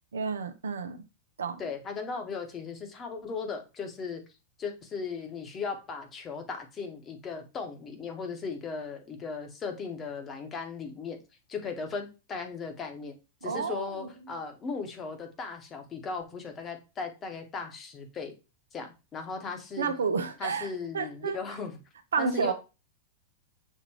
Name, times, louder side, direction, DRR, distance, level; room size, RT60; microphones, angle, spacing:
voice 1, 0.1-1.0 1.4-1.6 13.4-14.1 19.8-20.7 20.9-21.4 22.1-22.5, right 5 dB, 85° right, 0.6 m, -30 dB
voice 2, 1.6-4.2 4.6-11.2 11.5-13.1 13.4-18.3 18.7-20.0 20.4-21.8 22.2-22.5, left 5 dB, 30° left, 1.2 m, -37 dB
6.6 x 2.5 x 3.0 m
hypercardioid pair, 105°, 0 cm